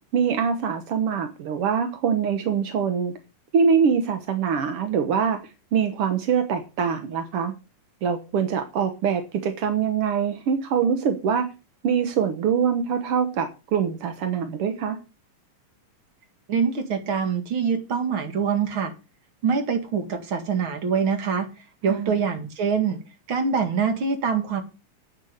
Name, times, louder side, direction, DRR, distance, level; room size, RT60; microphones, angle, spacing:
voice 1, 0.1-3.1 3.5-5.4 5.7-7.5 8.0-11.5 11.8-15.0 21.9-22.1, right 7 dB, 65° right, 7 dB, 1.5 m, -24 dB
voice 2, 16.5-18.9 19.4-21.5 21.8-23.0 23.3-24.6, right 6 dB, 40° right, 6 dB, 2.4 m, -24 dB
9.5 x 8.2 x 6.6 m, 0.31 s
omnidirectional pair, 3.9 m